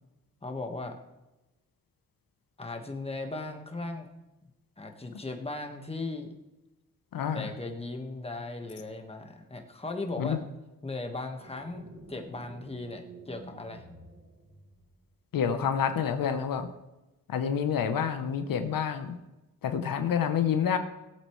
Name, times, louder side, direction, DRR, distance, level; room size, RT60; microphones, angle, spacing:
voice 1, 0.4-0.9 2.6-4.1 4.8-6.3 7.3-10.4 10.8-13.8, left 2 dB, 20° left, 4 dB, 1.5 m, -37 dB
voice 2, 7.1-7.5 10.2-10.4 15.3-16.7 17.3-19.2 19.6-20.8, left 7 dB, 85° left, 8 dB, 0.9 m, -28 dB
sound 1, 11.4-15.0, right 2 dB, 70° right, 3.4 m, -50 dB
17.5 x 8.3 x 3.2 m, 1.0 s
cardioid pair, 85°, 33 cm